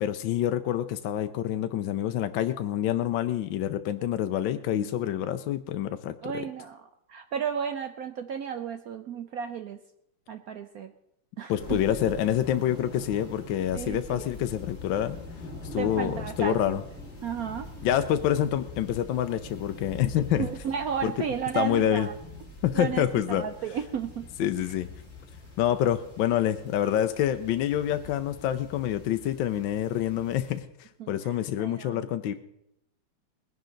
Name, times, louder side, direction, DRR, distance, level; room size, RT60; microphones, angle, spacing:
voice 1, 0.0-6.5 11.5-15.2 15.7-16.8 17.8-20.5 21.0-21.1 21.5-22.1 22.6-23.4 24.4-24.9 25.6-30.6 31.1-32.3, left 11 dB, 70° left, 9 dB, 1.3 m, -27 dB
voice 2, 6.2-9.8 10.3-10.9 11.4-11.8 13.7-14.2 15.8-16.8 17.2-17.7 20.4-22.1 22.7-24.3 31.0-32.1, right 7 dB, 70° right, 8 dB, 0.8 m, -33 dB
sound 1, 11.6-30.6, left 2 dB, 30° left, 3.0 m, -44 dB
20.0 x 11.0 x 3.9 m, 0.78 s
omnidirectional pair, 2.3 m